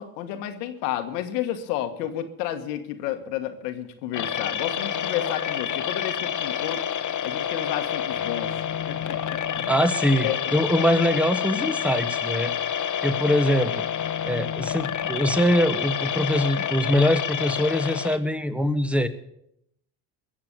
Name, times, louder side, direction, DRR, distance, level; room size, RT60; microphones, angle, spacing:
voice 1, 0.0-6.9 7.2-8.5 8.9-10.6, left 11 dB, 85° left, 8 dB, 1.4 m, -31 dB
sound 1, 4.1-18.2, left 9 dB, 40° left, 1.1 m, -28 dB
voice 2, 9.7-12.5 13.0-13.8 14.2-19.1, equal, 5° right, 11 dB, 1.3 m, -23 dB
21.0 x 7.4 x 6.7 m, 0.78 s
hypercardioid pair, 60°, 48 cm